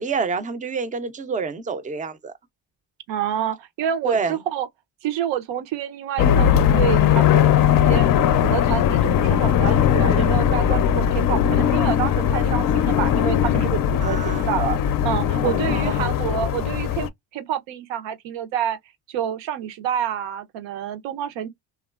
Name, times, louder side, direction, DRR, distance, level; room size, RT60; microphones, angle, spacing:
voice 1, 0.0-2.3 4.0-4.3 14.0-14.5 15.4-16.1, right 5 dB, 20° right, 0.4 m, -28 dB
voice 2, 3.1-4.7 5.0-8.1 8.4-18.8 19.1-21.5, right 9 dB, 80° right, 0.7 m, -28 dB
sound 1, 6.2-17.1, left 9 dB, 50° left, 0.4 m, -19 dB
2.9 x 2.3 x 2.3 m
cardioid pair, 125°, 44 cm